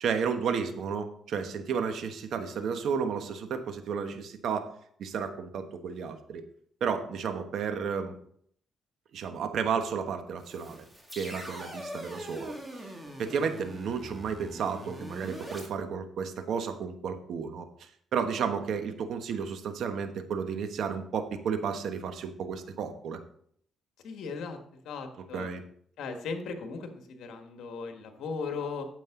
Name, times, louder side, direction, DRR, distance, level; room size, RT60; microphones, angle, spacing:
voice 1, 0.0-4.7 5.0-6.4 6.8-8.1 9.1-10.8 11.2-12.6 13.2-17.6 18.1-23.2 25.3-25.6, right 6 dB, 70° right, 7 dB, 1.2 m, -32 dB
sound 1, 10.4-15.7, equal, 10° right, 2.1 m, -43 dB
voice 2, 24.0-24.6 24.8-25.5 26.0-28.9, left 4 dB, 75° left, 5 dB, 1.6 m, -37 dB
9.4 x 7.7 x 3.8 m, 0.62 s
cardioid pair, 90°, 0 cm